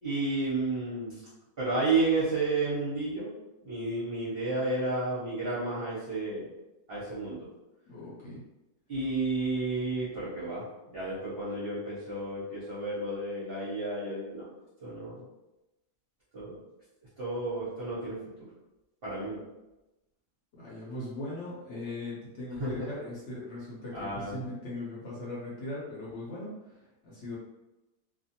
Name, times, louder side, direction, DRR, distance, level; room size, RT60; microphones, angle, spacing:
voice 1, 0.0-1.2 1.6-3.3 3.6-6.5 6.9-7.4 8.9-14.5 14.8-15.2 16.3-16.6 17.2-18.2 19.0-19.4 22.6-22.9 23.9-24.4, right 3 dB, 45° right, -8 dB, 0.9 m, -31 dB
voice 2, 7.9-8.4 20.6-27.4, left 1 dB, 55° left, -7 dB, 1.0 m, -39 dB
2.5 x 2.5 x 2.8 m, 1.0 s
omnidirectional pair, 1.7 m